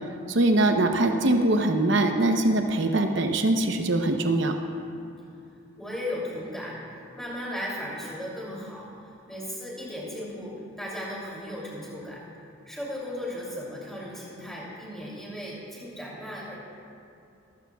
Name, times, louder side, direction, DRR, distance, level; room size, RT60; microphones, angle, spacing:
voice 1, 0.3-4.5, right 2 dB, 60° right, 5 dB, 0.8 m, -22 dB
voice 2, 5.8-6.7 7.1-8.9 9.3-12.2 12.7-16.6, left 1 dB, ahead, -6 dB, 2.9 m, -36 dB
18.0 x 14.5 x 2.4 m, 2.5 s
head